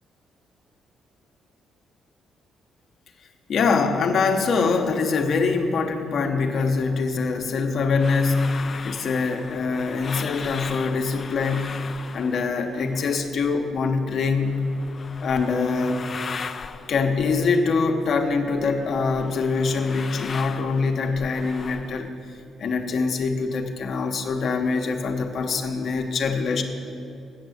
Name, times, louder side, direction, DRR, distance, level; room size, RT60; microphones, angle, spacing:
voice 1, 3.5-11.8 12.1-14.7 15.2-16.1 16.9-22.1 22.6-26.6, left 4 dB, 60° left, 5 dB, 0.9 m, -24 dB
sound 1, 7.9-13.5 13.7-18.4 18.6-22.1, left 5 dB, 40° left, 0.4 m, -38 dB
8.6 x 6.0 x 8.0 m, 2.5 s
cardioid pair, 90°, 0 cm